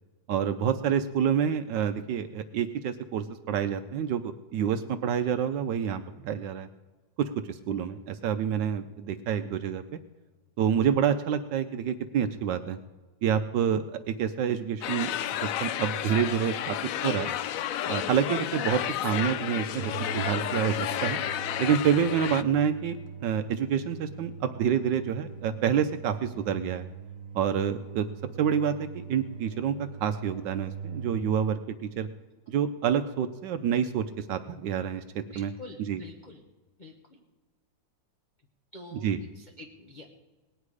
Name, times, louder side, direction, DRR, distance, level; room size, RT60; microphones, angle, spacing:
voice 1, 0.3-6.7 7.2-9.8 10.6-12.8 13.2-15.1 15.4-16.8 17.0-17.3 17.9-21.2 21.6-26.8 27.3-28.1 28.4-32.1 32.5-35.5 35.8-36.0 38.9-39.2, right 8 dB, 75° right, 9 dB, 1.3 m, -28 dB
sound 1, 14.8-22.4, left 11 dB, 80° left, 0.7 m, -31 dB
sound 2, 19.8-31.2, right 7 dB, 60° right, 1.3 m, -42 dB
voice 2, 35.3-36.4 36.8-37.2 38.7-40.1, left 1 dB, 30° left, 1 dB, 1.0 m, -47 dB
19.0 x 10.0 x 4.9 m, 1.3 s
omnidirectional pair, 2.0 m